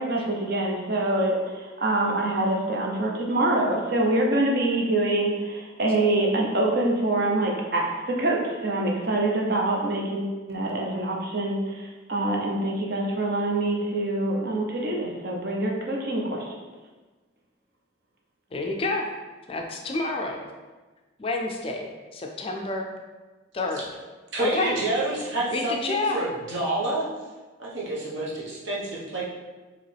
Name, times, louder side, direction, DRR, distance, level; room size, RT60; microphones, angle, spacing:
voice 1, 0.0-16.5, right 2 dB, 50° right, -1 dB, 0.7 m, -25 dB
voice 2, 18.5-19.1 19.5-20.4 21.2-22.9 23.5-23.8 24.4-24.8 25.5-26.2, left 2 dB, 30° left, 2 dB, 0.4 m, -29 dB
voice 3, 24.3-27.0 27.6-29.2, right 2 dB, 70° right, -6 dB, 1.1 m, -28 dB
4.7 x 3.0 x 3.4 m, 1.3 s
head